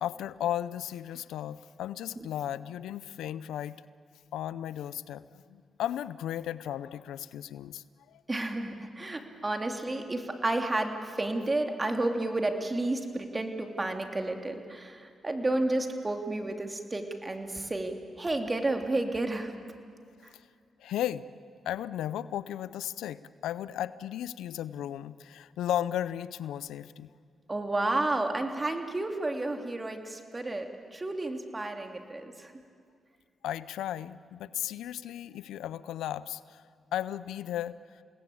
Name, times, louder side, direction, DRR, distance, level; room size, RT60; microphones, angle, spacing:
voice 1, 0.0-3.8 4.3-8.2 20.8-21.2 21.7-27.1 33.4-36.6 36.9-37.8, left 11 dB, 90° left, 17 dB, 0.5 m, -35 dB
voice 2, 8.3-19.5 27.5-32.5, right 2 dB, 25° right, 5 dB, 3.0 m, -31 dB
29.0 x 19.0 x 8.7 m, 2.1 s
supercardioid pair, 60°, 0 cm